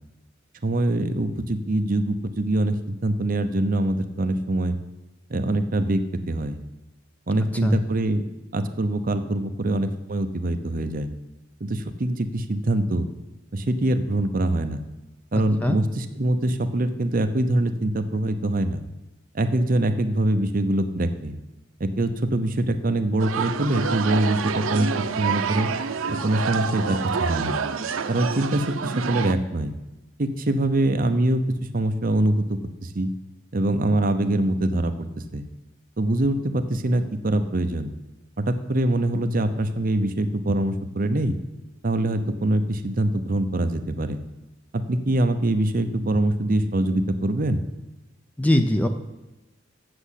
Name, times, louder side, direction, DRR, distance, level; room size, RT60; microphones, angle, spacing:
voice 1, 0.6-4.8 5.3-6.0 6.3-6.6 7.3-8.2 8.5-11.1 11.6-13.1 13.5-14.8 15.3-18.8 19.3-21.3 21.8-24.9 25.2-25.7 26.2-27.6 28.1-29.7 30.2-31.4 31.7-32.4 32.8-33.1 33.5-35.1 35.3-35.4 36.0-37.9 38.4-41.4 41.8-44.2 44.7-47.6, right 1 dB, 45° right, 8 dB, 0.7 m, -24 dB
voice 2, 15.3-15.8 48.4-48.9, left 1 dB, 10° left, 6 dB, 0.5 m, -21 dB
sound 1, 23.2-29.3, right 6 dB, 90° right, 0.6 m, -28 dB
7.8 x 7.2 x 8.2 m, 1.0 s
head